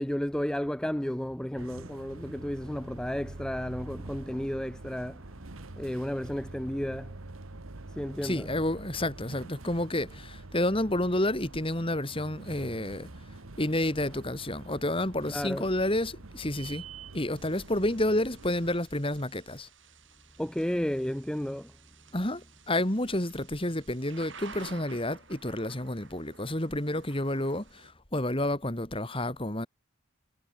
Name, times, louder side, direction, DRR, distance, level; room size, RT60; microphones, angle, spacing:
voice 1, 0.0-5.4 5.8-7.1 7.9-8.5 15.3-15.7 20.4-21.7, equal, 5° left, 0.4 m, -33 dB
sound 1, 1.6-18.8, right 2 dB, 75° right, 1.4 m, -46 dB
voice 2, 8.2-13.1 13.6-16.8 17.1-19.7 22.1-29.7, left 1 dB, 25° left, 3.1 m, -30 dB
Thunder / Rain, 17.3-27.9, right 4 dB, 60° right, 5.3 m, -52 dB
head